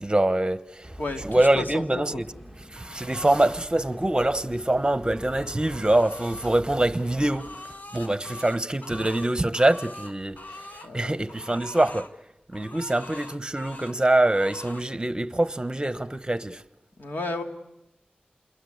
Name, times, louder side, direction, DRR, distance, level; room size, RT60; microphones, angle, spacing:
voice 1, 0.0-0.9 1.2-2.3 2.7-7.5 7.9-10.4 10.9-12.1 12.5-16.6, right 1 dB, 25° right, 1.2 m, -24 dB
sound 1, 0.8-7.6, equal, 10° left, 2.1 m, -45 dB
voice 2, 1.0-2.2 10.8-11.4 17.0-17.4, left 2 dB, 80° left, 2.7 m, -33 dB
sound 2, 2.8-3.6 5.0-6.5 7.0-10.9 11.3-12.1 12.5-14.0 14.3-14.9, left 2 dB, 60° left, 1.7 m, -43 dB
28.0 x 22.0 x 8.1 m
cardioid pair, 50°, 3 cm